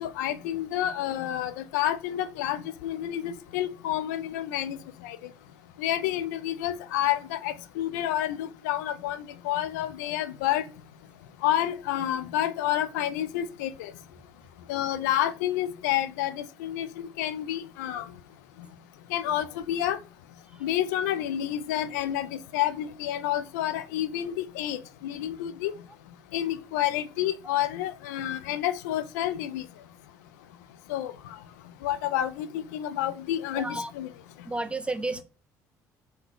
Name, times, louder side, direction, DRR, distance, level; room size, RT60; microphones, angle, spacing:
voice 1, 0.0-4.8 5.0-5.2 5.8-10.7 11.4-13.9 14.7-18.1 19.1-20.0 20.6-25.7 26.3-29.6 30.9-31.1 31.8-33.7 33.9-34.1, left 12 dB, 75° left, 0.4 m, -29 dB
voice 2, 33.5-33.9 34.4-35.2, right 2 dB, 10° right, 0.6 m, -31 dB
3.6 x 2.7 x 3.7 m
hypercardioid pair, 50°, 9 cm